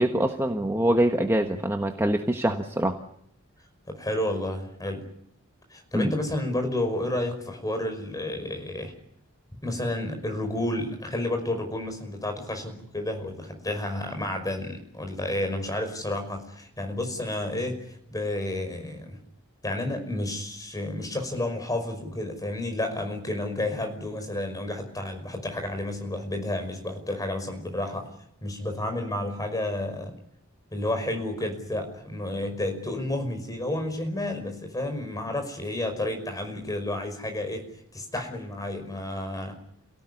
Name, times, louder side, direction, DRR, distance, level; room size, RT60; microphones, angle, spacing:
voice 1, 0.0-2.9 5.9-6.1, right 1 dB, 10° right, 4 dB, 1.4 m, -24 dB
voice 2, 3.9-5.0 5.7-8.9 9.6-19.2 19.6-28.1 28.4-30.1 30.7-37.6 37.9-39.6, left 1 dB, 15° left, 5 dB, 5.5 m, -31 dB
28.0 x 18.0 x 9.8 m, 0.74 s
head